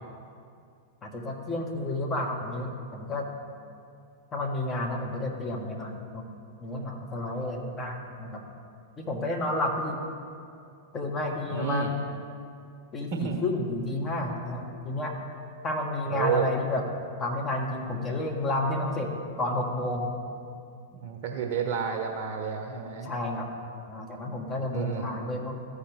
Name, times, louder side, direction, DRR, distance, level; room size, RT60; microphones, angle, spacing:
voice 1, 1.0-3.3 4.3-6.2 6.6-8.4 9.0-10.0 10.9-12.1 12.9-15.1 15.6-16.8 17.2-19.1 19.4-20.1 23.0-23.5 23.9-25.6, left 2 dB, 25° left, 1 dB, 1.3 m, -31 dB
voice 2, 11.5-11.9 13.1-13.4 16.1-16.5 20.9-23.1 24.7-25.1, right 7 dB, 50° right, 3 dB, 0.7 m, -30 dB
13.5 x 5.1 x 3.4 m, 2.5 s
figure-of-eight pair, 95°, 0 cm